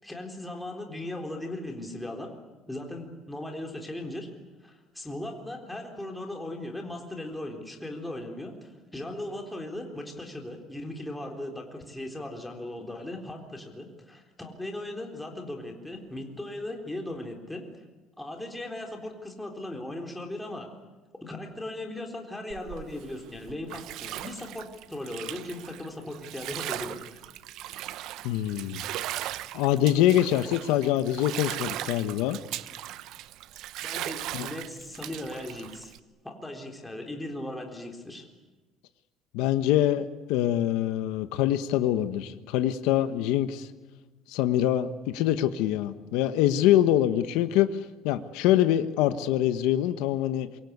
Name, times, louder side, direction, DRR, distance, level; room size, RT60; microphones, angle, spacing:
voice 1, 0.0-2.3 2.7-4.3 4.6-17.6 18.2-20.7 21.2-27.2 33.8-35.9 36.2-38.3, left 1 dB, 5° left, 2 dB, 3.8 m, -38 dB
Bathtub (filling or washing), 22.5-36.0, right 14 dB, 65° right, 0.9 m, -38 dB
voice 2, 28.2-28.8 29.5-32.4 34.3-34.5 39.3-43.7 44.3-47.8 48.0-50.5, left 12 dB, 90° left, 10 dB, 1.3 m, -24 dB
27.0 x 23.5 x 8.2 m, 1.2 s
cardioid pair, 140°, 0 cm